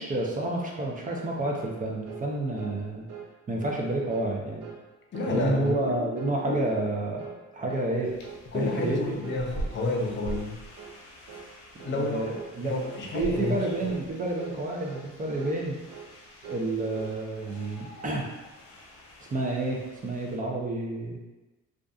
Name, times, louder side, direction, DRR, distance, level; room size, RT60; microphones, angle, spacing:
voice 1, 0.0-3.1 3.5-4.6 5.3-7.3 7.5-8.2 8.5-9.2 11.9-12.7 13.1-15.8 16.4-18.3 19.3-21.2, right 2 dB, 25° right, -1 dB, 0.5 m, -29 dB
sound 1, 1.0-1.3 1.5-1.8 2.1-2.3 2.6-2.8 3.1-3.3 3.6-3.8 4.1-4.3 4.6-4.8 5.1-5.4 5.6-5.9 6.2-6.4 6.7-6.9 7.2-7.4 7.7-7.9 8.2-8.5 8.7-8.9 9.2-9.5 9.7-10.0 10.3-10.5 10.8-11.0 11.3-11.5 11.8-12.0 12.3-12.5 12.8-13.1 13.3-13.6 13.8-14.1 14.4-14.6 14.9-15.1 15.4-15.6 15.9-16.1 16.4-17.2, right 8 dB, 70° right, 0.5 m, -43 dB
voice 2, 5.1-6.0 6.5-6.6 8.5-10.6 11.8-12.3 12.6-13.9, left 3 dB, 40° left, 0 dB, 0.5 m, -30 dB
sound 2, 8.0-20.4, right 1 dB, 85° left, 0.6 m, -44 dB
2.6 x 2.3 x 2.4 m, 1.1 s
cardioid pair, 90°, 30 cm